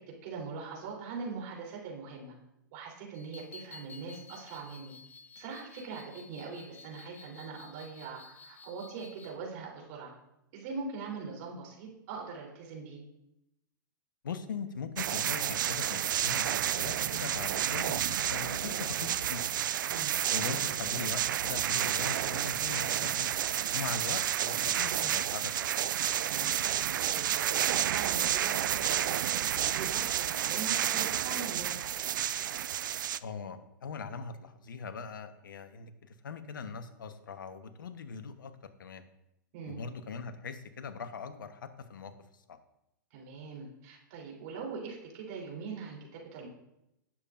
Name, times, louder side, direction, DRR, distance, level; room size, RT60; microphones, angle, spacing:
voice 1, 0.2-2.3 2.7-4.9 5.3-10.1 10.5-13.0 19.9-20.1 26.3-26.7 27.1-32.2 39.5-39.8 43.1-46.5, right 5 dB, 50° right, -1 dB, 3.4 m, -42 dB
sound 1, 3.1-9.4, left 4 dB, 15° left, 0.8 m, -53 dB
voice 2, 14.2-19.6 20.3-23.3 23.7-25.7 33.2-38.5 38.8-39.0 39.7-42.1 42.5-42.6, left 5 dB, 75° left, 9 dB, 1.0 m, -41 dB
sound 2, 15.0-33.2, right 11 dB, 70° right, 0.4 m, -30 dB
18.0 x 7.3 x 2.5 m, 0.86 s
hypercardioid pair, 110°, 11 cm